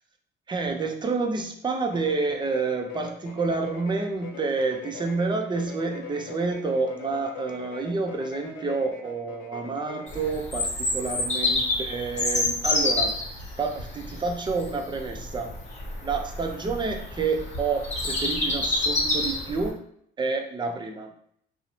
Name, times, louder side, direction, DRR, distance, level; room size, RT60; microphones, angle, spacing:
voice 1, 0.5-13.2 13.6-15.5 16.0-19.8 20.2-21.1, right 4 dB, 25° right, 4 dB, 0.4 m, -29 dB
sound 1, 1.9-10.4, left 5 dB, 85° left, 0.5 m, -42 dB
Bird vocalization bird call bird song, 10.1-19.7, left 2 dB, 35° left, 0.9 m, -28 dB
2.6 x 2.0 x 2.9 m, 0.67 s
cardioid pair, 90°, 20 cm